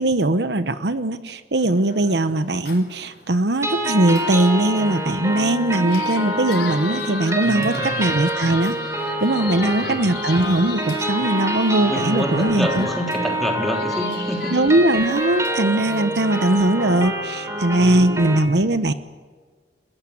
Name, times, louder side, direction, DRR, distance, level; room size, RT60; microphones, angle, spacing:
voice 1, 0.0-8.8 9.2-12.9 14.5-18.9, right 1 dB, 70° right, 11 dB, 1.0 m, -20 dB
sound 1, 1.6-16.7, left 4 dB, 70° left, 4.8 m, -36 dB
sound 2, 3.6-18.4, right 1 dB, 15° right, 3.4 m, -27 dB
voice 2, 7.4-7.9 9.4-10.1 11.8-14.5 17.8-18.2, equal, ahead, 0 dB, 3.6 m, -28 dB
30.0 x 14.5 x 8.6 m, 1.5 s
head